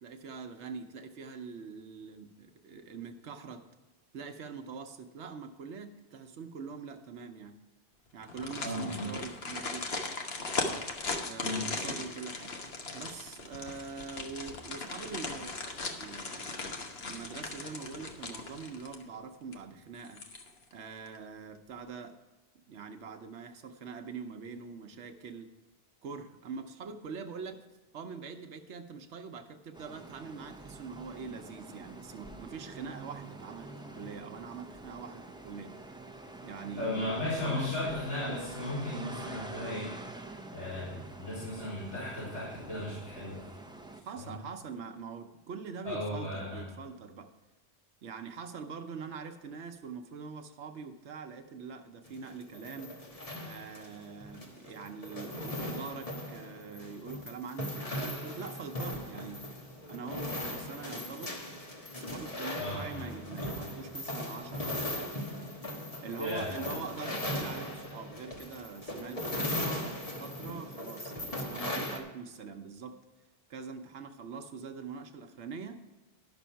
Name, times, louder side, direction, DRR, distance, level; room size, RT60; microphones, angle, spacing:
voice 1, 0.0-3.7 4.1-7.6 8.1-10.1 11.2-12.5 12.9-15.6 15.9-16.8 17.1-20.2 20.7-22.2 22.7-25.5 26.0-27.6 27.9-35.8 36.4-38.0 44.0-47.3 48.0-52.9 53.4-59.4 59.9-61.4 61.9-65.1 66.0-73.0 73.5-75.8, right 5 dB, 85° right, 6 dB, 1.1 m, -44 dB
sound 1, 8.2-19.2 19.5-19.6 20.0-20.7 21.1-21.2, left 3 dB, 65° left, 1.3 m, -38 dB
voice 2, 8.6-9.1 11.4-11.7 36.8-39.9 40.5-43.4 44.2-44.4 45.8-46.6 62.6-63.1 66.2-66.5, left 1 dB, 80° left, -11 dB, 4.0 m, -35 dB
sound 2, 29.7-44.0, right 2 dB, 5° right, 0.5 m, -47 dB
sound 3, 52.1-72.0, left 1 dB, 35° left, 1.4 m, -38 dB
11.0 x 6.2 x 5.6 m, 1.2 s
omnidirectional pair, 1.1 m